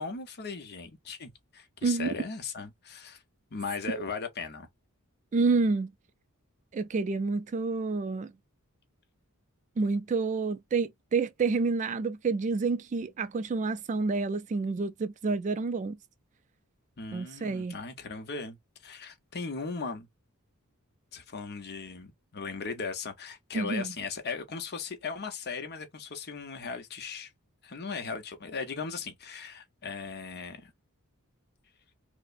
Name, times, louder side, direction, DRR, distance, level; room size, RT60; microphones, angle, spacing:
voice 1, 0.0-3.2 3.5-4.7 17.0-18.6 18.8-20.1 21.1-27.3 27.6-30.7, left 5 dB, 50° left, 0.8 m, -38 dB
voice 2, 5.3-5.9 6.7-8.3 9.8-16.0 17.1-17.8 23.5-23.9, right 4 dB, 35° right, 0.3 m, -29 dB
4.8 x 2.1 x 2.5 m
head